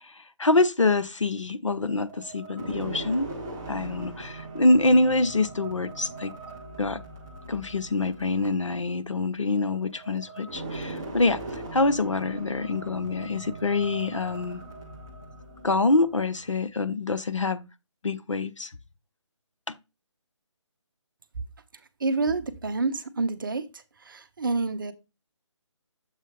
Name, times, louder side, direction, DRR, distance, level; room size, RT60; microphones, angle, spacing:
voice 1, 0.0-3.3 3.7-6.3 6.8-7.0 7.5-14.6 15.6-17.7 18.0-18.7 19.7-19.8, left 2 dB, 75° left, 0.7 m, -25 dB
sound 1, 1.9-16.6, right 2 dB, 5° right, 0.3 m, -40 dB
voice 2, 22.0-24.9, right 3 dB, 45° right, 0.7 m, -28 dB
7.3 x 3.1 x 5.3 m
figure-of-eight pair, 150°, 16 cm